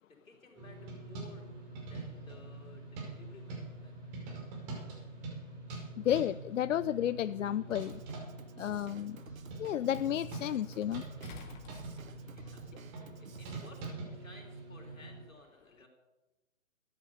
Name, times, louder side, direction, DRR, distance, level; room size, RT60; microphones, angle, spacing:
voice 1, 0.1-1.5 1.8-4.1 12.1-12.6 13.2-15.9, left 3 dB, 85° left, 1 dB, 4.4 m, -56 dB
sound 1, 0.5-15.2, right 2 dB, 35° right, 5.3 m, -44 dB
voice 2, 6.0-8.0 8.6-9.2 9.6-11.0, left 11 dB, 70° left, 16 dB, 0.5 m, -32 dB
Drum kit / Drum, 7.7-13.9, right 6 dB, 85° right, 1.0 m, -53 dB
sound 2, 7.9-8.0 11.2-12.5 13.9-14.0, left 5 dB, 35° left, 2.2 m, -51 dB
14.0 x 10.0 x 6.7 m, 1.1 s
figure-of-eight pair, 135°, 40 cm